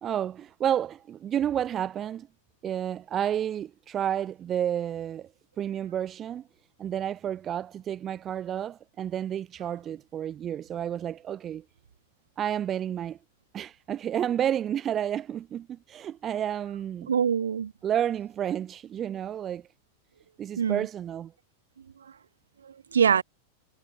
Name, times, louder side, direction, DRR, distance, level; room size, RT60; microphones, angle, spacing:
voice 1, 0.0-2.3 2.6-5.3 5.6-6.4 6.8-11.6 12.4-13.2 13.5-17.1 17.8-19.6 20.4-21.3, right 10 dB, 25° right, 1.3 m, -30 dB
voice 2, 17.1-17.7 20.6-20.9 22.0-22.1 22.6-23.2, right 7 dB, 70° right, 1.3 m, -24 dB
figure-of-eight pair, 90°, 0 cm